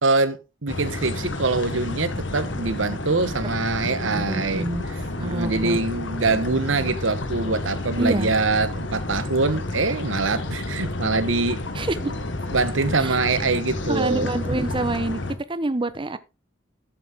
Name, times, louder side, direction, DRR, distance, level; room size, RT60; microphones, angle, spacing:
voice 1, 0.0-4.7 5.2-11.6 12.0-12.1 12.5-14.4, right 3 dB, 85° right, 1.2 m, -24 dB
sound 1, 0.7-15.3, left 2 dB, 70° left, 1.6 m, -30 dB
voice 2, 3.8-4.8 5.1-5.8 8.0-8.3 11.7-12.1 13.0-13.2 13.9-15.2 15.5-16.2, right 2 dB, 25° right, 0.9 m, -27 dB
12.5 x 7.6 x 3.6 m
head